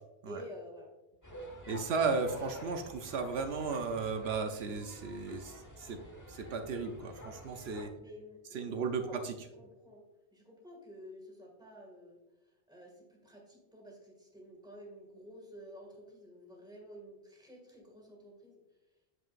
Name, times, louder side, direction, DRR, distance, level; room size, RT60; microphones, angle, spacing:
voice 1, 0.3-0.9 1.6-1.9 8.0-9.3 9.6-10.0 10.3-12.2 12.7-18.6, equal, 5° right, 0 dB, 2.0 m, -51 dB
sound 1, 1.2-7.9, equal, 20° left, 1.0 m, -49 dB
voice 2, 1.7-6.0 6.3-7.9 8.5-9.3, right 4 dB, 80° right, 5 dB, 1.0 m, -35 dB
8.3 x 7.6 x 2.5 m, 1.0 s
omnidirectional pair, 1.0 m